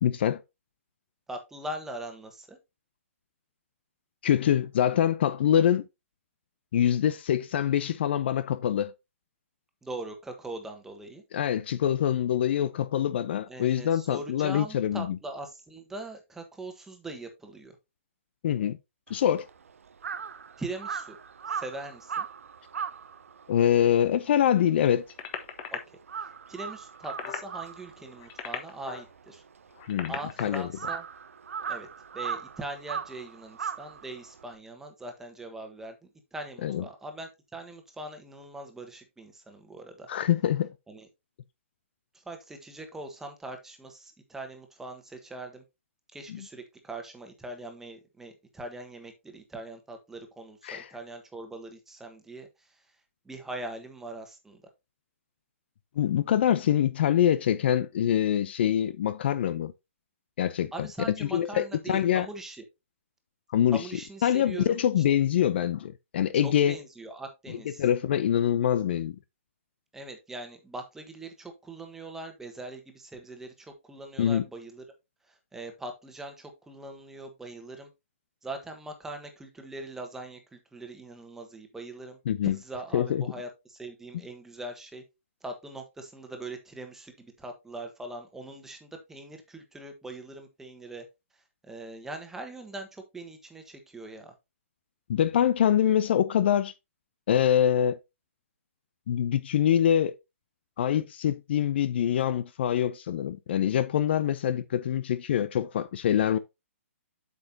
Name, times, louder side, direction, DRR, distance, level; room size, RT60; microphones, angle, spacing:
voice 1, 0.0-0.4 4.2-5.8 6.7-8.9 11.3-15.2 18.4-18.8 19.1-19.5 23.5-25.1 29.9-30.1 30.4-30.7 36.6-36.8 40.1-40.7 46.3-46.4 50.6-50.9 56.0-59.7 60.4-62.3 63.5-63.8 64.2-66.8 67.5-69.2 74.2-74.4 82.3-82.6 82.9-83.2 84.1-84.2 95.1-96.7 97.3-98.0 99.1-100.1 100.8-106.4, left 10 dB, 50° left, 0.6 m, -25 dB
voice 2, 1.3-2.6 9.8-11.2 13.5-17.7 20.6-21.2 21.5-22.3 25.7-26.0 26.5-29.4 30.1-31.1 31.7-31.9 32.1-40.1 40.9-41.1 42.1-45.6 46.1-52.8 53.2-54.6 60.7-62.6 63.7-64.8 66.4-67.8 69.9-74.8 75.3-77.9 78.4-82.2 82.4-85.0 85.4-91.0 91.6-94.3, right 2 dB, 5° right, 1.4 m, -41 dB
Crow, 19.1-25.6 25.9-34.5, right 7 dB, 75° right, 0.7 m, -38 dB
sound 1, 25.1-25.8 26.9-27.5 28.1-29.1 29.7-30.6 31.7-31.9, left 9 dB, 30° left, 1.3 m, -37 dB
8.3 x 6.7 x 2.8 m
hypercardioid pair, 150°, 7 cm